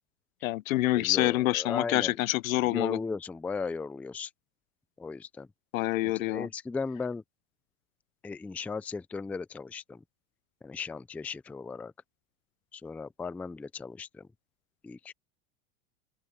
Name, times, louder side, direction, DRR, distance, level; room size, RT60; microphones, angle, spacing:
voice 1, 0.4-3.0 5.7-6.5, left 17 dB, 80° left, 1.0 m, -27 dB
voice 2, 0.9-2.2 2.6-4.3 5.0-5.5 6.0-7.2 8.2-10.0 10.6-11.9 12.7-14.3 14.8-15.1, left 4 dB, 5° left, 0.4 m, -36 dB
open air
supercardioid pair, 120°, 41 cm